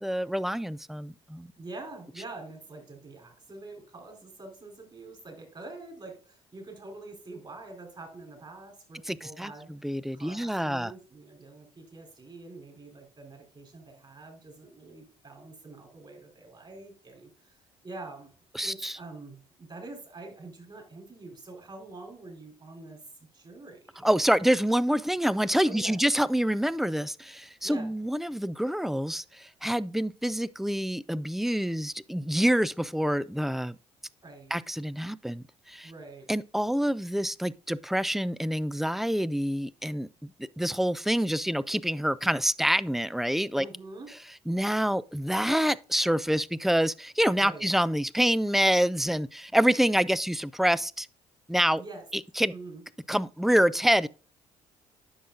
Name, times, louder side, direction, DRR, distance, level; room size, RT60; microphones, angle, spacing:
voice 1, 0.0-1.5 9.1-10.9 18.5-19.0 24.0-33.8 34.5-35.9 36.3-40.3 40.6-43.6 44.5-51.1 51.5-51.8 52.4-52.5 53.1-54.1, equal, ahead, 0.4 m, -27 dB
voice 2, 1.6-17.5 17.8-18.3 18.6-24.1 25.6-26.0 27.6-27.9 34.2-34.6 35.8-36.3 43.5-44.1 47.4-47.7 51.7-52.0 52.5-52.8, right 2 dB, 35° right, 4.7 m, -45 dB
10.0 x 6.3 x 2.5 m
supercardioid pair, 65°, 14 cm